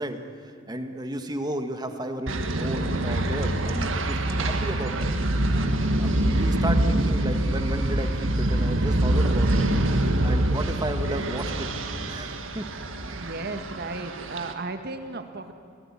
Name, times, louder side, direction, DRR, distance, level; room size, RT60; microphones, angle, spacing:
voice 1, 0.0-5.1 6.0-9.6 10.2-11.7 12.1-12.7, right 1 dB, 20° right, 6 dB, 1.6 m, -33 dB
sound 1, 2.3-14.5, right 1 dB, 75° right, 1.9 m, -25 dB
voice 2, 13.1-15.5, right 3 dB, 55° right, 7 dB, 1.7 m, -34 dB
29.5 x 17.5 x 9.9 m, 2.4 s
head